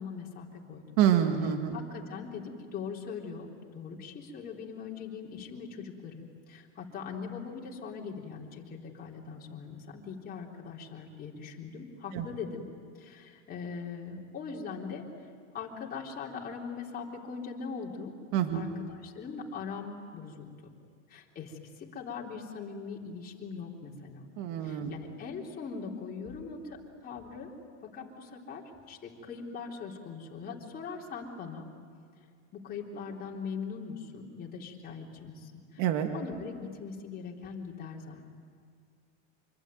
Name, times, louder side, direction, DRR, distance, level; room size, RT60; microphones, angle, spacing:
voice 1, 0.0-0.8 1.7-12.7 12.9-15.0 15.5-18.1 18.5-20.5 21.1-24.2 24.6-27.5 27.9-31.7 32.5-35.9 36.1-38.3, left 5 dB, 25° left, -2 dB, 3.8 m, -41 dB
voice 2, 1.0-1.8 12.1-12.3 18.3-18.6 24.4-24.9 35.8-36.1, right 10 dB, 50° right, 6 dB, 2.1 m, -26 dB
26.0 x 24.5 x 9.3 m, 2.2 s
supercardioid pair, 140°, 36 cm